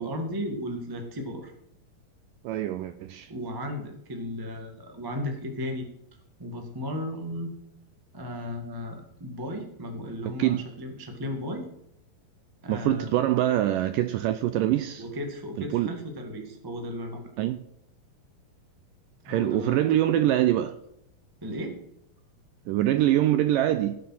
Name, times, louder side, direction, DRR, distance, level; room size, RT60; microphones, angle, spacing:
voice 1, 0.0-1.5 3.3-5.9 6.4-7.5 8.1-11.7 12.6-13.2 15.0-17.3 19.3-19.8 21.4-21.8, left 1 dB, 35° right, 0.3 m, -35 dB
voice 2, 2.4-3.3 10.4-10.6 12.7-15.1 15.6-15.9 17.4-17.6 19.3-20.8 22.7-24.0, right 13 dB, 85° right, 1.9 m, -24 dB
16.5 x 7.0 x 5.9 m
omnidirectional pair, 4.4 m